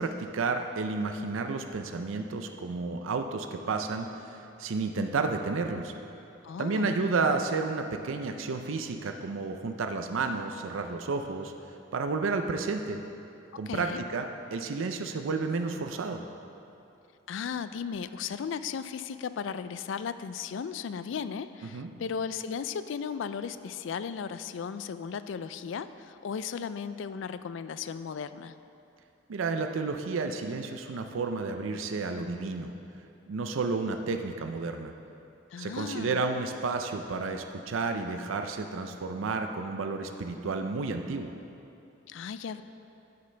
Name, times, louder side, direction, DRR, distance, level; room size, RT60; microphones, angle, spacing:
voice 1, 0.0-5.9 6.6-11.5 11.9-13.0 13.6-16.2 21.7-21.9 29.3-32.7 33.3-34.9 35.6-41.3, right 4 dB, 85° right, 6 dB, 0.5 m, -31 dB
voice 2, 6.4-7.0 13.5-14.0 17.3-28.6 35.5-36.2 42.1-42.6, left 6 dB, 70° left, 12 dB, 0.3 m, -36 dB
9.5 x 9.4 x 3.3 m, 2.7 s
head